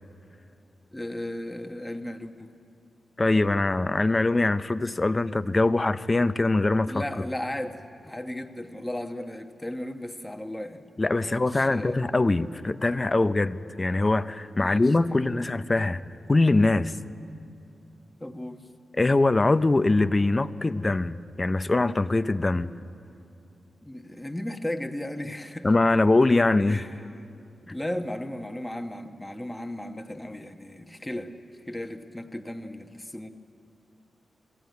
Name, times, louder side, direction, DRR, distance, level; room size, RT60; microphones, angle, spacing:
voice 1, 0.9-2.5 6.9-10.9 11.2-12.1 14.5-15.4 18.2-18.7 23.8-25.7 26.7-27.3 27.7-31.3 31.7-33.3, left 1 dB, 10° left, 5 dB, 1.1 m, -36 dB
voice 2, 3.2-7.0 11.0-16.0 16.3-16.9 18.9-22.7 25.6-26.8, left 2 dB, 25° left, 13 dB, 0.5 m, -23 dB
20.5 x 15.0 x 9.3 m, 2.6 s
wide cardioid pair, 100°, 0 cm